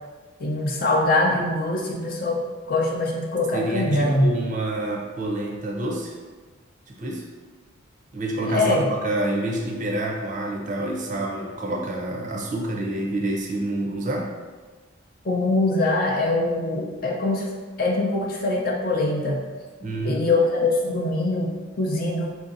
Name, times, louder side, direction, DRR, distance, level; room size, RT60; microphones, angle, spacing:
voice 1, 0.4-4.3 8.4-8.9 15.2-19.4 20.0-22.3, left 2 dB, 45° left, -1 dB, 0.5 m, -23 dB
voice 2, 3.5-6.1 6.9-7.2 8.1-14.3 19.8-20.2, right 1 dB, 35° right, -1 dB, 0.5 m, -28 dB
4.6 x 2.6 x 2.5 m, 1.3 s
head